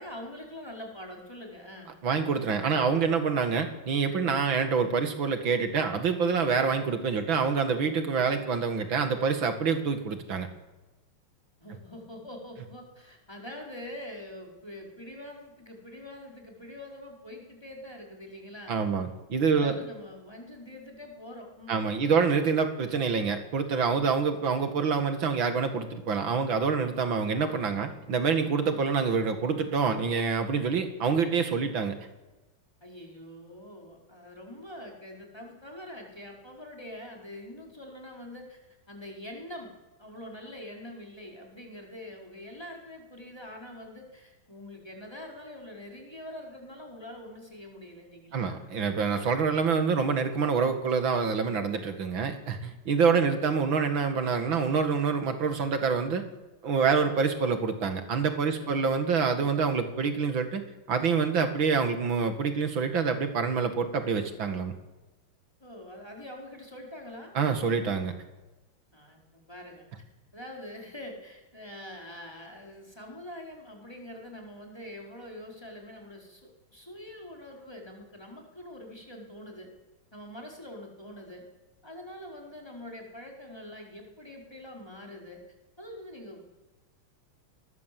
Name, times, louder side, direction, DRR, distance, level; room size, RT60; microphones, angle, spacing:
voice 1, 0.0-1.9 11.6-18.8 19.5-22.3 32.8-39.7 40.0-48.7 58.6-58.8 65.6-67.3 68.9-69.9 70.3-79.7 80.1-81.4 81.8-85.4 85.8-86.4, left 1 dB, 10° left, 0 dB, 4.6 m, -44 dB
voice 2, 2.0-10.5 18.7-19.7 21.7-31.9 48.3-56.2 56.6-60.6 60.9-64.7 67.4-68.1, right 5 dB, 75° right, 7 dB, 2.7 m, -26 dB
20.5 x 19.5 x 7.7 m, 1.1 s
omnidirectional pair, 2.2 m